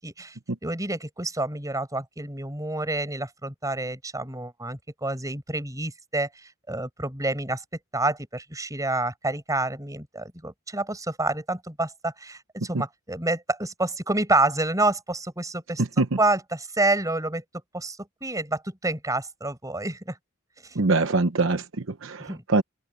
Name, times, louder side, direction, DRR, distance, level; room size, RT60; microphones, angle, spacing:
voice 1, 0.0-7.6 7.9-15.8 16.2-17.4 17.7-20.2 20.6-20.8 22.3-22.4, right 2 dB, 15° right, 7.6 m, -28 dB
voice 2, 20.8-22.6, right 3 dB, 65° right, 1.0 m, -23 dB
head